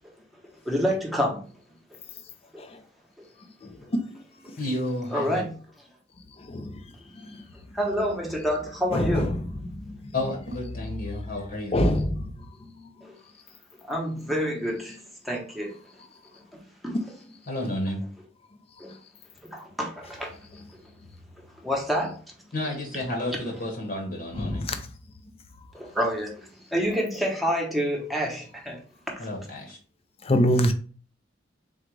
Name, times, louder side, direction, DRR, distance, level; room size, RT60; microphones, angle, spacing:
voice 1, 0.6-1.5 2.5-2.6 5.1-5.5 7.7-9.4 13.0-13.1 13.8-15.8 16.5-17.1 18.8-18.9 19.4-20.4 20.7-20.8 21.6-22.2 25.7-28.8 29.1-29.3, equal, ahead, 0.9 m, -28 dB
voice 2, 4.6-5.4 10.1-11.8 17.5-18.0 22.5-24.7 29.2-29.8, left 1 dB, 50° left, 1.1 m, -31 dB
voice 3, 11.7-12.2 30.3-30.7, equal, 30° left, 0.5 m, -21 dB
3.8 x 2.4 x 4.6 m
head